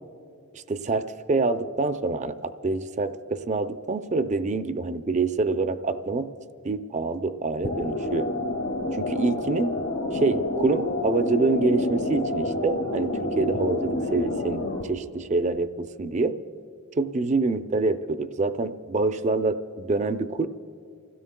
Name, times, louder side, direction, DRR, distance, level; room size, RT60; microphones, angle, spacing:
voice 1, 0.5-6.3 6.6-8.3 8.9-9.7 10.1-16.4 17.0-20.5, right 3 dB, 35° right, 10 dB, 0.4 m, -26 dB
sound 1, 7.6-14.8, left 1 dB, 85° left, 2.0 m, -28 dB
29.0 x 16.5 x 2.2 m, 2.5 s
head